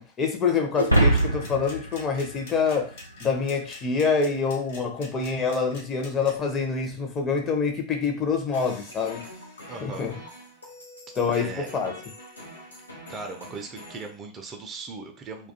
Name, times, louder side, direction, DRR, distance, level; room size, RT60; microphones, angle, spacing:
voice 1, 0.0-2.9 3.2-9.3 9.8-10.2 11.2-12.0, left 5 dB, 25° left, 0.6 m, -26 dB
sound 1, 0.7-3.3, right 1 dB, 90° right, 0.4 m, -24 dB
sound 2, 0.9-6.3, left 2 dB, 55° left, 1.1 m, -45 dB
sound 3, 8.5-14.1, left 1 dB, 80° left, 0.6 m, -44 dB
voice 2, 9.7-10.0 11.3-11.7 13.1-15.5, right 4 dB, 25° right, 0.4 m, -38 dB
2.2 x 2.2 x 2.8 m
figure-of-eight pair, 90°, 0 cm